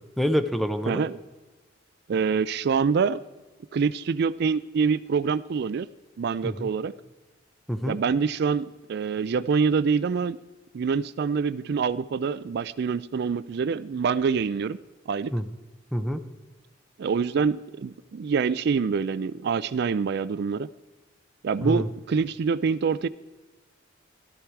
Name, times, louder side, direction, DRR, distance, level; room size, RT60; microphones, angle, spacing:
voice 1, 0.2-1.1 6.4-6.7 7.7-8.0 15.3-15.4 15.9-16.2 21.6-21.8, equal, ahead, 10 dB, 0.7 m, -26 dB
voice 2, 0.9-1.2 2.1-3.2 3.7-5.9 6.2-6.9 7.9-10.4 10.7-14.8 15.1-15.3 17.0-20.7 21.4-23.1, right 5 dB, 60° right, 17 dB, 0.4 m, -25 dB
13.5 x 12.5 x 4.6 m, 1.2 s
head